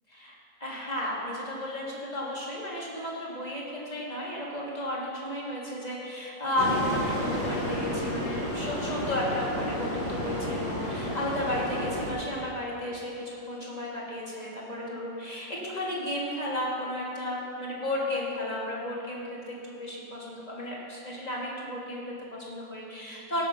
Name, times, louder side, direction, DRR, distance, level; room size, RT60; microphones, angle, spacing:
voice 1, 0.6-23.5, left 1 dB, 20° left, -5 dB, 2.3 m, -33 dB
sound 1, 6.6-12.1, equal, 70° left, 3.0 m, -31 dB
17.0 x 7.0 x 5.8 m, 2.5 s
omnidirectional pair, 2.0 m